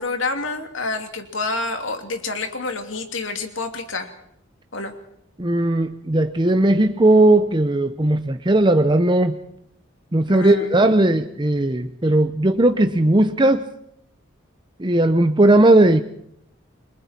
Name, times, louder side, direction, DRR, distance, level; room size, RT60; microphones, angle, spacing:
voice 1, 0.0-4.1 4.7-4.9 10.3-10.8, left 3 dB, 65° left, 6 dB, 2.9 m, -28 dB
voice 2, 5.4-9.3 10.1-13.6 14.8-16.0, right 1 dB, 20° right, 8 dB, 0.8 m, -17 dB
29.0 x 22.5 x 4.4 m, 0.73 s
head